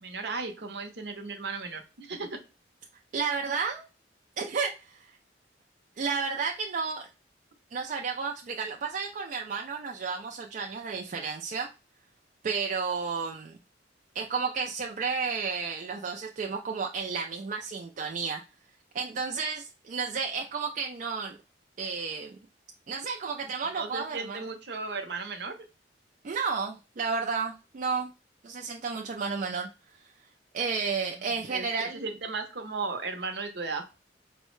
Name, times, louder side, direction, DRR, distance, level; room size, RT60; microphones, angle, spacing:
voice 1, 0.0-2.4 23.7-25.6 31.5-33.9, right 4 dB, 65° right, 6 dB, 0.7 m, -35 dB
voice 2, 3.1-3.8 4.4-5.1 6.0-7.1 7.7-11.7 12.4-13.6 14.1-18.4 18.9-21.4 21.8-22.4 22.9-24.4 26.2-28.1 28.4-29.7 30.5-32.0, right 5 dB, 45° right, 2 dB, 0.4 m, -32 dB
4.5 x 2.1 x 3.1 m, 0.30 s
head